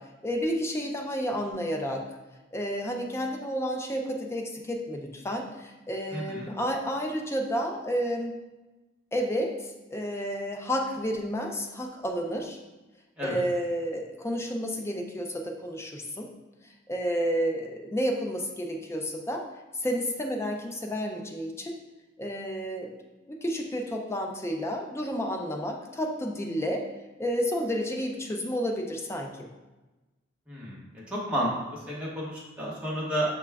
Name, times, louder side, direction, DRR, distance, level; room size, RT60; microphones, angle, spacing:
voice 1, 0.2-2.0 2.5-8.4 9.1-12.6 13.2-16.3 16.9-19.4 19.8-21.7 22.2-22.9 23.3-26.8 27.2-29.5, equal, 15° left, 1 dB, 0.4 m, -31 dB
voice 2, 6.1-6.5 13.2-13.4 30.5-30.8 31.1-33.3, equal, 5° right, -6 dB, 1.0 m, -31 dB
5.9 x 2.3 x 3.4 m, 1.1 s
head